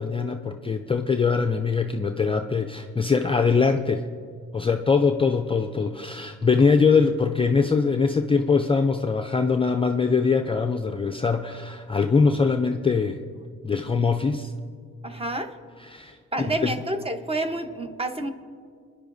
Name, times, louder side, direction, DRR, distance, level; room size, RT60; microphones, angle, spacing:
voice 1, 0.0-4.1 4.5-13.2 13.6-14.5 15.8-16.2 16.6-16.7, left 5 dB, 20° left, 5 dB, 0.4 m, -22 dB
voice 2, 15.0-15.5 16.3-18.3, right 1 dB, 20° right, 7 dB, 0.9 m, -29 dB
26.0 x 10.5 x 2.7 m, 2.1 s
cardioid pair, 90°, 30 cm